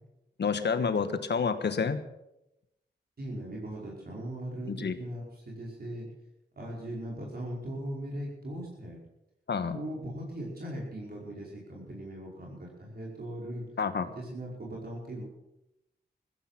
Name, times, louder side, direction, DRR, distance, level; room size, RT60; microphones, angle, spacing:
voice 1, 0.4-2.0 4.7-5.0 9.5-9.8 13.8-14.1, left 5 dB, 70° left, 10 dB, 1.4 m, -29 dB
voice 2, 3.2-6.1 6.6-9.0 9.7-13.7 14.1-15.2, right 1 dB, 55° right, -3 dB, 5.4 m, -39 dB
16.0 x 15.0 x 5.9 m, 0.88 s
cardioid pair, 75°, 19 cm